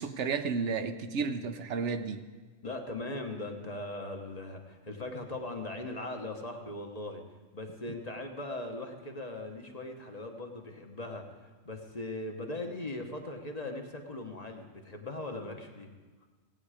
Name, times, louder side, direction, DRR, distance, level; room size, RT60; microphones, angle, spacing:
voice 1, 0.0-2.2, right 5 dB, 65° right, 9 dB, 1.0 m, -32 dB
voice 2, 2.6-7.2 7.5-15.9, left 2 dB, 35° left, 3 dB, 1.1 m, -39 dB
18.0 x 8.6 x 4.9 m, 1.3 s
omnidirectional pair, 1.3 m